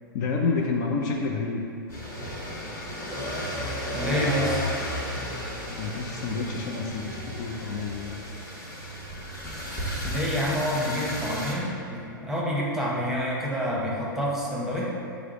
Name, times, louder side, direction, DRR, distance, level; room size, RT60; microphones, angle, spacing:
voice 1, 0.1-1.7 5.8-8.2, left 4 dB, 50° left, 0 dB, 0.4 m, -29 dB
sound 1, 1.9-11.5, equal, 25° left, 1.0 m, -33 dB
voice 2, 3.9-4.7 10.0-14.8, equal, 5° right, -6 dB, 0.8 m, -28 dB
4.7 x 2.1 x 4.6 m, 2.5 s
hypercardioid pair, 115°, 11 cm